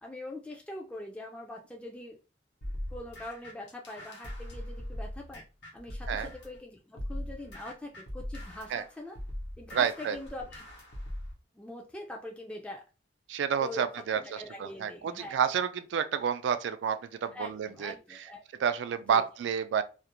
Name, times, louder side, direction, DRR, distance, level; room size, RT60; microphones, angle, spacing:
voice 1, 0.0-2.2 2.9-5.4 5.7-9.2 9.6-10.6 11.5-12.8 13.6-13.9 14.1-15.4 17.3-18.4 19.0-19.2, left 1 dB, 5° left, 0.3 m, -43 dB
sound 1, 2.6-6.6 7.0-11.3, left 1 dB, 75° left, 0.8 m, -40 dB
voice 2, 9.7-10.2 13.3-17.9 18.6-19.8, right 7 dB, 90° right, 0.3 m, -30 dB
2.4 x 2.0 x 2.9 m
head